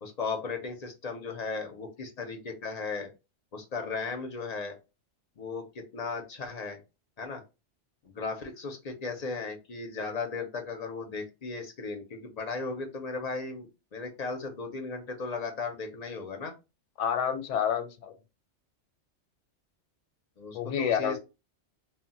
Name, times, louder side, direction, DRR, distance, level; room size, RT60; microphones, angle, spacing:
voice 1, 0.0-3.1 3.5-4.8 5.4-6.8 7.2-7.4 8.0-16.5 20.4-21.2, left 4 dB, 55° left, 4 dB, 0.4 m, -36 dB
voice 2, 17.0-18.2 20.5-21.2, left 8 dB, 90° left, 8 dB, 0.9 m, -29 dB
2.1 x 2.1 x 3.8 m, 0.28 s
omnidirectional pair, 1.2 m